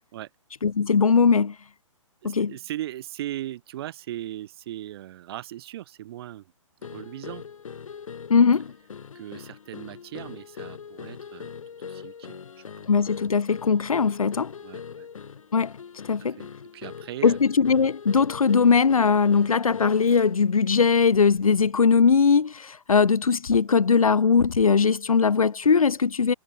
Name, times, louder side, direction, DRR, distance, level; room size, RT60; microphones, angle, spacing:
voice 1, 0.6-1.5 2.2-2.5 8.3-8.7 12.9-14.5 15.5-15.7 16.1-16.4 17.2-26.3, left 5 dB, 90° left, 1.6 m, -20 dB
voice 2, 2.2-6.5 6.8-7.4 9.1-11.6 11.8-12.9 14.6-15.1 16.2-17.4, right 13 dB, 45° right, 6.0 m, -38 dB
sound 1, 6.8-20.1, left 6 dB, 75° left, 5.3 m, -41 dB
hypercardioid pair, 145°, 17 cm